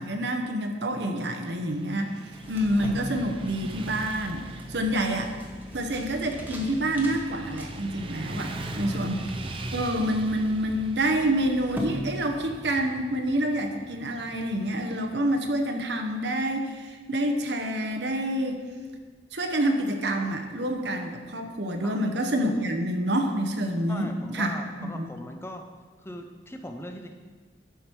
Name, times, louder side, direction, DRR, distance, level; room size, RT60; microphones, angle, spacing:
voice 1, 0.0-2.1 2.5-4.4 4.7-5.3 5.7-9.4 9.7-18.6 19.3-24.5 24.8-25.1, right 1 dB, 75° right, 4 dB, 1.0 m, -27 dB
Motorcycle / Traffic noise roadway noise, 1.7-15.8, right 2 dB, 30° right, 0.6 m, -41 dB
sound 1, 2.3-12.8, right 1 dB, 10° right, 1.0 m, -41 dB
voice 2, 8.4-9.1 21.8-22.1 23.9-25.7 26.0-27.1, left 1 dB, 15° left, 5 dB, 0.5 m, -40 dB
11.0 x 5.1 x 4.6 m, 1.4 s
head